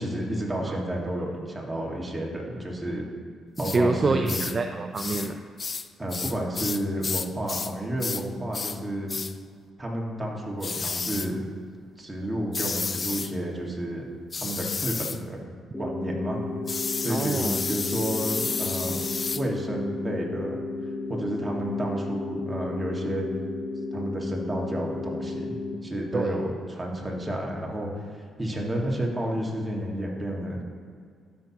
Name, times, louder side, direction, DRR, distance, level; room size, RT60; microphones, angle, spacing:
voice 1, 0.0-3.0 3.6-4.4 6.0-9.2 9.8-11.4 12.0-14.0 14.4-15.4 15.8-16.4 17.0-19.0 19.3-20.6 21.1-23.2 23.9-27.9 28.4-30.6, right 1 dB, 15° right, -2 dB, 1.6 m, -31 dB
sound 1, 3.6-3.8 4.3-4.6 5.0-5.3 5.6-7.7 8.0-8.3 8.5-8.8 9.1-9.3 10.6-11.3 12.5-13.3 14.3-15.2 16.7-19.4, left 4 dB, 35° left, 0.3 m, -31 dB
voice 2, 3.7-5.4 17.1-17.6 26.1-26.3, right 3 dB, 35° right, 6 dB, 0.4 m, -26 dB
sound 2, 15.7-25.7, left 3 dB, 10° left, 0.9 m, -33 dB
12.5 x 5.8 x 2.9 m, 2.1 s
cardioid pair, 90°, 0 cm